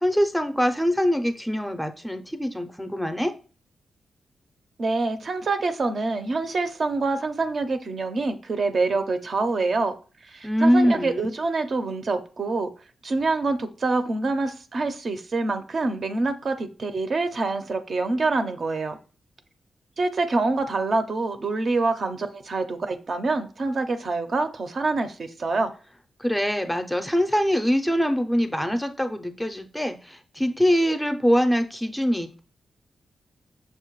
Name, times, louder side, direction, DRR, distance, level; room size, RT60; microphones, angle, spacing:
voice 1, 0.0-3.3 10.4-11.3 26.2-32.4, equal, 5° left, 0.4 m, -23 dB
voice 2, 4.8-9.9 10.3-12.7 13.0-19.0 20.0-25.7, right 3 dB, 50° right, 0.5 m, -26 dB
6.3 x 2.1 x 3.0 m
cardioid pair, 90°, 0 cm